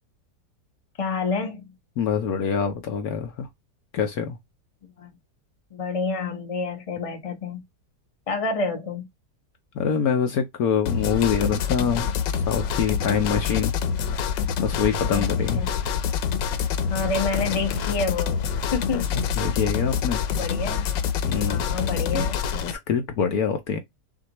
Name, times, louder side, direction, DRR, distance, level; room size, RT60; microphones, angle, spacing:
voice 1, 1.0-1.7 5.0-5.1 5.7-7.6 8.3-9.1 15.1-15.7 16.9-19.1 20.4-20.9 21.5-22.4, left 4 dB, 25° left, 0.8 m, -28 dB
voice 2, 2.0-3.5 3.9-4.4 9.7-12.1 12.5-13.7 14.6-15.6 19.1-20.2 21.2-22.2 22.7-23.8, left 7 dB, 65° left, 1.1 m, -25 dB
sound 1, 10.9-22.7, left 7 dB, 90° left, 1.4 m, -26 dB
6.0 x 2.6 x 2.9 m
omnidirectional pair, 1.9 m